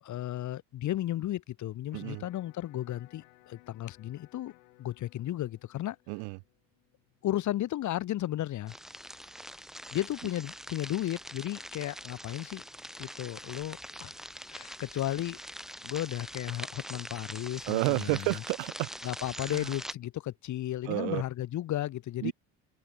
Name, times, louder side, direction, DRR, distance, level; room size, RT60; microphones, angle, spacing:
voice 1, 0.0-4.5 4.8-6.0 7.2-8.7 9.9-12.6 13.0-14.1 14.5-15.4 15.8-18.3 19.0-22.3, left 13 dB, 45° left, 1.0 m, -34 dB
Electric guitar, 1.9-8.0, left 24 dB, 85° left, 2.4 m, -61 dB
voice 2, 1.9-2.2 6.1-6.4 17.7-18.9 19.4-19.7 20.8-21.2 22.2-22.3, right 40 dB or more, 75° right, 0.8 m, -31 dB
sound 1, 8.7-19.9, equal, ahead, 2.2 m, -44 dB
open air
supercardioid pair, 85°, 40 cm